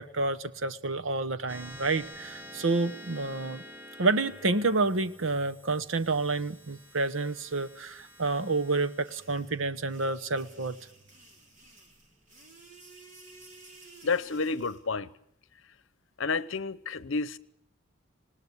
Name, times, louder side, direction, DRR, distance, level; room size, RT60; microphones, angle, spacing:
voice 1, 0.0-3.6 4.0-10.8, right 3 dB, 80° right, 1.0 m, -29 dB
sound 1, 1.5-12.3, left 1 dB, 10° right, 2.0 m, -49 dB
sound 2, 9.0-14.8, right 2 dB, 40° right, 3.9 m, -54 dB
voice 2, 14.0-15.1 16.2-17.4, left 4 dB, 80° left, 0.9 m, -30 dB
19.5 x 19.0 x 8.0 m
head